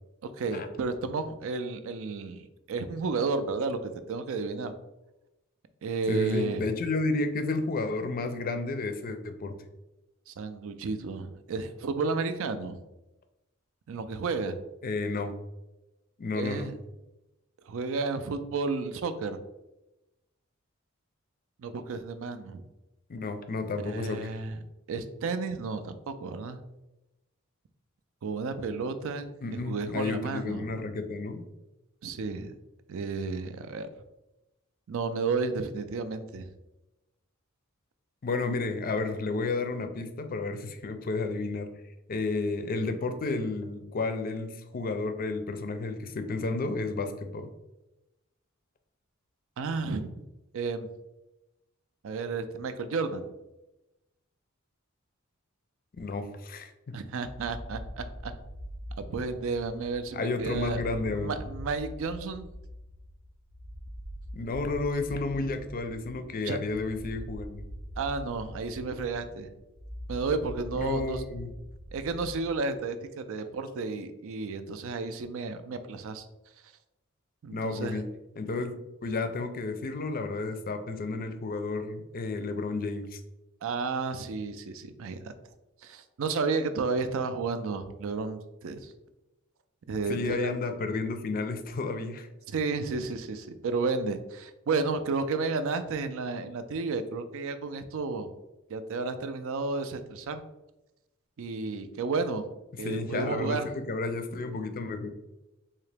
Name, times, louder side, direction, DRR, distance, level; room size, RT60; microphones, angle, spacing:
voice 1, 0.4-2.4 2.7-4.7 5.8-6.6 10.3-12.8 13.9-14.6 16.3-16.7 17.7-19.4 21.6-22.6 23.9-24.6 24.9-26.6 28.2-29.3 29.7-30.7 32.0-32.5 32.9-33.9 34.9-36.5 49.6-50.2 50.5-50.9 52.0-53.3 56.9-58.3 59.1-62.5 66.4-66.6 68.0-69.5 70.1-71.2 71.9-76.2 77.4-78.0 83.6-85.3 85.8-88.9 89.9-90.5 92.5-98.3 98.7-100.4 101.4-102.4 102.8-103.7, right 4 dB, 65° right, 10 dB, 0.4 m, -32 dB
voice 2, 6.1-9.6 14.8-15.3 16.2-16.7 23.1-24.3 29.4-31.4 38.2-41.7 42.1-47.5 55.9-56.9 60.1-61.3 64.3-67.6 70.8-71.5 77.5-78.1 78.4-83.2 90.1-92.3 102.8-105.1, left 3 dB, 45° left, 8 dB, 0.4 m, -32 dB
sound 1, 57.2-72.8, equal, 85° right, 0.8 m, -43 dB
3.8 x 2.8 x 3.3 m, 0.98 s
head